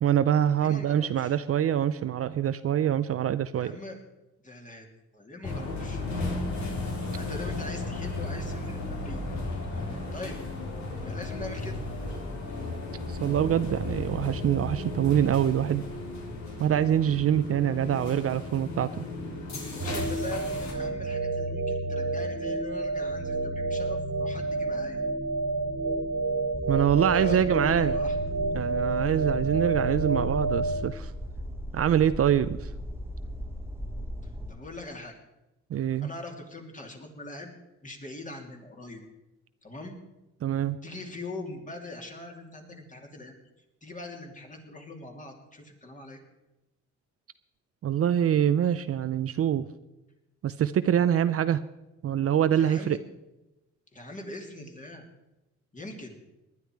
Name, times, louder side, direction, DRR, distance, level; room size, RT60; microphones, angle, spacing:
voice 1, 0.0-3.8 13.1-15.9 16.6-19.1 26.7-27.9 28.5-31.1 31.7-32.7 35.7-36.1 40.4-40.8 47.8-49.7 50.4-51.6 52.0-53.0, right 10 dB, 50° right, 13 dB, 0.6 m, -25 dB
voice 2, 0.6-1.3 3.5-4.0 4.4-4.9 5.1-6.0 7.1-9.2 9.7-9.8 10.1-10.4 10.9-11.8 19.7-25.0 27.0-28.2 34.5-35.1 36.0-37.5 37.8-39.0 39.6-39.9 40.8-43.3 43.8-46.2 52.5-53.0 53.9-55.0 55.7-56.2, left 2 dB, 25° left, 2 dB, 3.0 m, -42 dB
sound 1, 5.4-20.7, left 2 dB, 65° left, 3.7 m, -35 dB
sound 2, 19.8-30.9, right 3 dB, 70° right, 1.9 m, -29 dB
sound 3, 26.5-34.5, equal, 10° right, 1.1 m, -37 dB
19.0 x 11.0 x 4.7 m, 0.99 s
cardioid pair, 90°, 30 cm